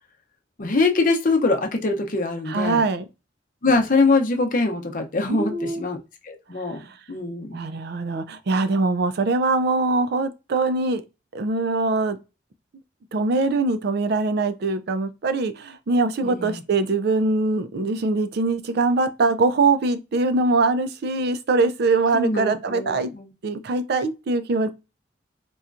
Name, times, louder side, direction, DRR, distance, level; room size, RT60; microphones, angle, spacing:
voice 1, 0.6-2.8 3.6-6.0 6.2-6.8 7.1-7.7 16.2-16.6 22.1-23.3, left 3 dB, 50° left, 0.7 m, -23 dB
voice 2, 2.5-3.0 5.3-5.8 7.5-11.0 11.3-12.2 13.1-23.1 23.4-24.7, right 3 dB, 60° right, 0.4 m, -22 dB
4.2 x 2.3 x 2.5 m
head